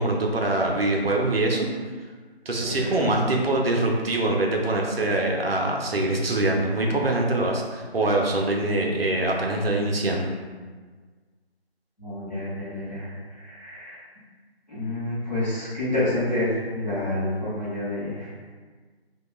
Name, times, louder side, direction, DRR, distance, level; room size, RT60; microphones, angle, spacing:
voice 1, 0.0-1.7 2.5-10.3, right 2 dB, 65° right, 0 dB, 0.5 m, -24 dB
voice 2, 2.6-3.0 12.0-14.0 14.7-18.3, left 1 dB, 40° left, -10 dB, 0.8 m, -29 dB
2.2 x 2.2 x 2.9 m, 1.4 s
figure-of-eight pair, 175°, 32 cm